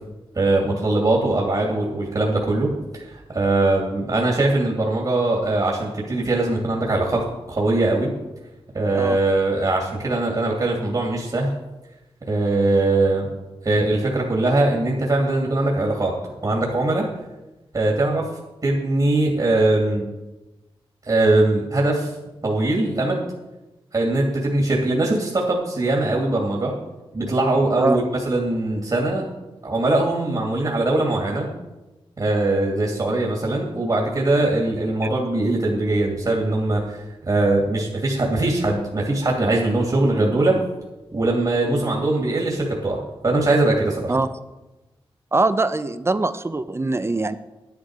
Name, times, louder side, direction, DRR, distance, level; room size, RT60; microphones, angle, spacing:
voice 1, 0.4-2.7 2.9-7.2 7.5-8.1 8.7-11.5 12.3-13.3 13.6-16.1 16.4-17.1 17.7-18.2 18.6-20.0 21.1-22.1 22.4-23.2 23.9-26.7 27.1-29.3 29.6-31.5 32.2-37.0 37.3-40.6 41.1-44.1, right 2 dB, 45° right, -1 dB, 2.5 m, -21 dB
voice 2, 45.3-47.4, right 3 dB, 25° right, 12 dB, 0.7 m, -22 dB
10.5 x 9.9 x 4.8 m, 1.1 s
cardioid pair, 70°, 10 cm